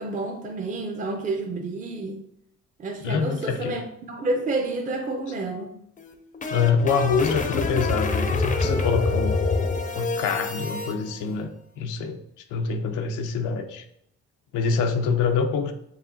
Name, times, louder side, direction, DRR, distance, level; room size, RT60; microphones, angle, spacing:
voice 1, 0.0-2.2 2.8-5.7, right 2 dB, 25° right, 3 dB, 0.5 m, -29 dB
voice 2, 3.0-3.8 6.5-9.4 9.9-11.5 11.8-12.2 12.5-13.8 14.5-15.7, left 5 dB, 90° left, 6 dB, 0.5 m, -25 dB
sound 1, 6.0-10.9, left 3 dB, 25° left, 0.5 m, -26 dB
4.7 x 2.7 x 2.6 m, 0.74 s
cardioid pair, 90°, 30 cm